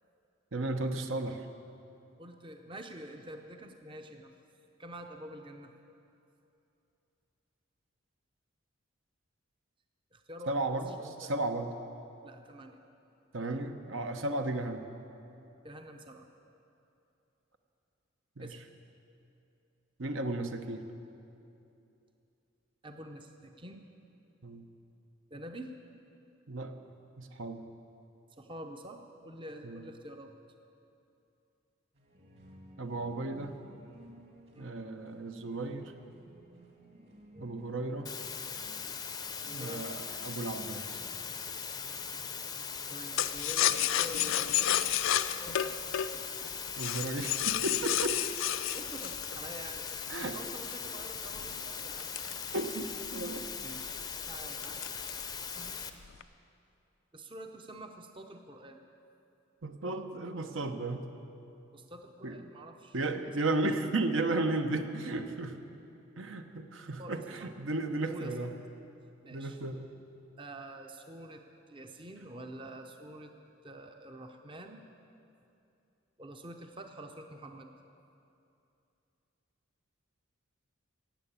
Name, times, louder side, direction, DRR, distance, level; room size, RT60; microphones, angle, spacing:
voice 1, 0.5-1.5 10.5-11.7 13.3-14.8 18.4-18.6 20.0-20.8 24.4-24.6 26.5-26.7 27.2-27.6 29.6-29.8 32.8-33.6 34.6-35.9 37.4-38.1 39.5-41.0 46.8-48.2 50.1-50.4 52.5-53.5 59.6-61.1 62.2-62.4 62.9-65.6 66.2-68.5 69.3-69.8, right 2 dB, 70° right, 6 dB, 0.9 m, -34 dB
voice 2, 2.2-4.4 4.8-5.7 10.1-11.3 12.2-12.8 15.6-16.3 18.4-18.6 22.8-23.8 25.3-25.7 28.4-30.3 34.5-34.8 37.3-37.5 39.4-39.9 42.9-46.0 48.7-52.1 53.6-54.0 54.3-55.1 55.5-55.8 57.1-58.8 61.7-63.3 67.0-67.5 68.1-68.5 69.2-69.6 70.4-73.3 73.6-74.8 76.2-77.7, right 1 dB, 25° right, 5 dB, 0.7 m, -47 dB
sound 1, 31.9-45.3, right 1 dB, 55° right, 2.7 m, -57 dB
sound 2, 38.1-55.9, left 6 dB, 20° left, 0.6 m, -40 dB
sound 3, 43.2-50.1 50.6-53.1 53.5-53.6 53.9-54.2 54.6-55.3 55.7-56.2, left 12 dB, 75° left, 0.5 m, -31 dB
16.5 x 8.0 x 8.8 m, 2.7 s
head